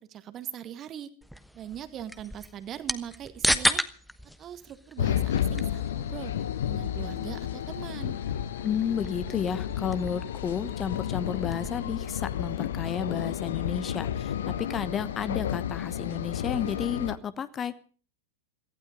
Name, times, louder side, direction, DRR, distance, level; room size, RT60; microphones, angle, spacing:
voice 1, 0.1-1.1 1.5-3.8 4.4-6.3 6.6-8.2, right 10 dB, 30° right, 12 dB, 1.6 m, -41 dB
sound 1, 1.2-11.9, equal, ahead, 1.1 m, -35 dB
sound 2, 5.0-17.2, left 10 dB, 60° left, 0.9 m, -32 dB
voice 2, 8.6-17.8, left 7 dB, 25° left, 15 dB, 1.1 m, -32 dB
17.5 x 15.5 x 5.2 m, 0.41 s
figure-of-eight pair, 90°, 0 cm